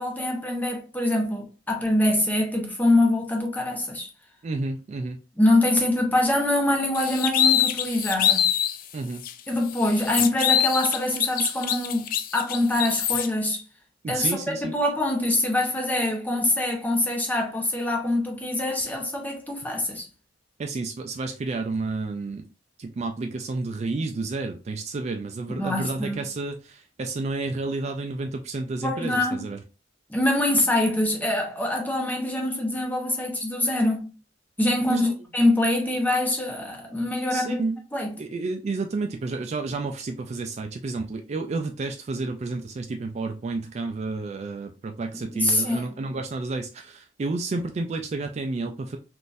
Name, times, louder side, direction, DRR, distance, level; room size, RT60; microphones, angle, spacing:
voice 1, 0.0-4.1 5.4-8.5 9.5-12.1 12.3-13.6 14.1-20.1 25.5-26.3 28.8-29.4 30.1-34.1 34.6-37.6 37.9-38.2 45.3-45.9, left 1 dB, 10° left, 0.9 m, -24 dB
voice 2, 4.4-5.2 8.9-9.2 14.0-14.7 20.6-22.5 22.8-29.6 34.9-35.1 37.3-37.8 38.2-49.0, right 3 dB, 35° right, 0.3 m, -30 dB
sound 1, 7.0-8.8 9.2-9.3 9.7-13.3, left 9 dB, 50° left, 0.3 m, -24 dB
3.7 x 2.5 x 2.5 m
head